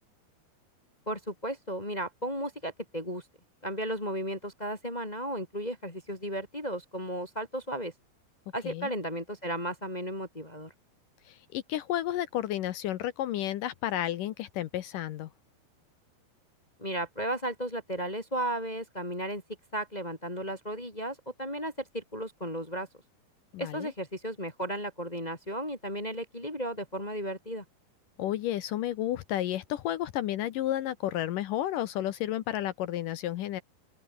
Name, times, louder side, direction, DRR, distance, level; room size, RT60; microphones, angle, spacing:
voice 1, 1.0-3.2 3.6-7.9 8.5-10.7 16.8-19.4 19.7-22.9 23.6-27.6, right 1 dB, 15° left, 1.6 m, -34 dB
voice 2, 11.3-15.3 23.5-23.9 28.2-33.6, left 12 dB, 70° left, 2.1 m, -32 dB
open air
omnidirectional pair, 4.9 m